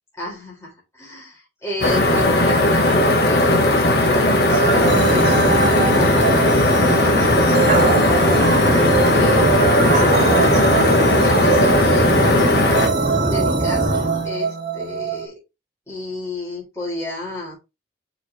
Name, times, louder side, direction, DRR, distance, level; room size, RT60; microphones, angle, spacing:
voice 1, 0.2-8.5 9.1-12.1 12.7-15.3 15.9-17.5, left 1 dB, 15° left, 3.8 m, -32 dB
sound 1, 1.8-12.9, left 1 dB, 60° left, 1.5 m, -17 dB
sound 2, 4.5-15.3, right 5 dB, 70° right, 1.4 m, -24 dB
sound 3, 4.8-14.3, right 1 dB, 45° right, 1.9 m, -23 dB
5.7 x 5.1 x 3.3 m
head